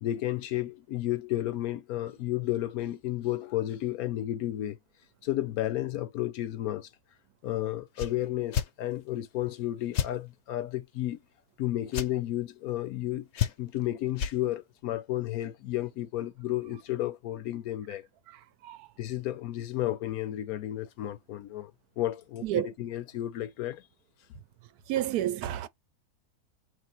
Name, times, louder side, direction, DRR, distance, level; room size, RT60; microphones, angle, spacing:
voice 1, 0.0-4.8 5.2-6.9 7.4-11.2 11.6-18.1 19.0-21.7 22.0-23.8, left 14 dB, 70° left, 1.1 m, -32 dB
sound 1, 7.9-8.1 8.5-8.7 9.9-10.1 11.9-12.1 13.4-13.8 14.2-14.4, left 9 dB, 55° left, 0.9 m, -29 dB
voice 2, 18.3-18.9 22.4-22.7 24.9-25.7, right 12 dB, 75° right, 1.1 m, -30 dB
4.6 x 3.2 x 3.0 m
omnidirectional pair, 1.7 m